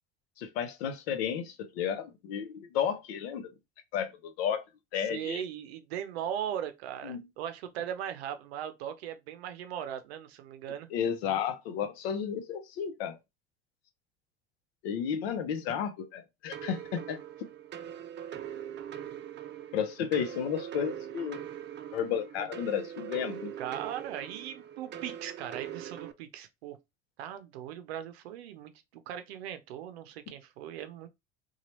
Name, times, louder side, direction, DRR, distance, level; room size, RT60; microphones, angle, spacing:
voice 1, 0.4-3.5 3.9-4.6 4.9-5.4 7.0-7.2 10.9-13.2 14.8-17.2 19.7-21.4 21.9-23.5, left 8 dB, 80° left, 0.7 m, -32 dB
voice 2, 5.0-10.9 22.4-22.5 23.6-26.8 27.2-31.1, right 10 dB, 90° right, 0.6 m, -39 dB
sound 1, 16.5-26.1, right 10 dB, 35° right, 0.5 m, -42 dB
3.0 x 2.3 x 2.9 m
hypercardioid pair, 75°, 30 cm